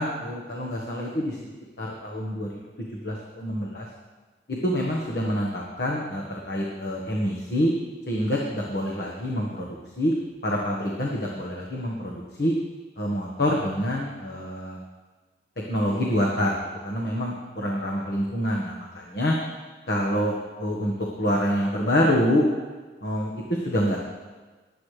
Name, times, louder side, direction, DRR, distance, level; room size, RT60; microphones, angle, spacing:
voice 1, 0.0-1.4 1.8-2.5 2.8-3.9 4.5-7.7 8.1-10.1 10.4-12.5 13.0-14.8 15.7-16.5 16.8-19.3 19.9-20.9 21.2-22.5 23.0-24.0, equal, 65° left, -2 dB, 1.4 m, -26 dB
20.0 x 8.6 x 3.3 m, 1.3 s
head